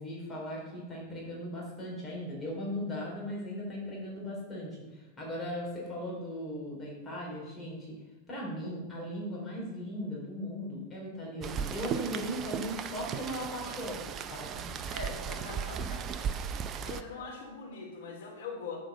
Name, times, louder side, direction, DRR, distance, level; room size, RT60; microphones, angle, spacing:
voice 1, 0.0-7.9 8.3-14.0 14.3-14.6, equal, 20° left, -4 dB, 3.3 m, -38 dB
Rain, 11.4-17.0, right 7 dB, 30° right, 0.6 m, -36 dB
voice 2, 14.8-16.2 16.8-18.8, left 4 dB, 60° left, -2 dB, 3.4 m, -42 dB
7.4 x 5.3 x 6.7 m, 1.2 s
figure-of-eight pair, 100°, 0 cm